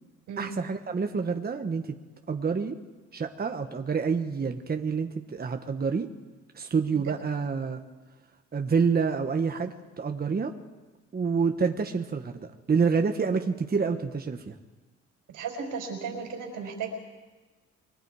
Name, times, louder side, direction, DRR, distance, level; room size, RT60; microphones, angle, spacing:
voice 1, 0.4-2.0 2.3-2.8 3.1-6.1 6.5-7.8 8.5-10.5 11.1-14.5, right 5 dB, 30° right, 5 dB, 1.3 m, -28 dB
voice 2, 15.3-16.9, right 6 dB, 85° right, 2 dB, 5.2 m, -35 dB
29.0 x 22.5 x 4.9 m, 1.3 s
cardioid pair, 90°, 30 cm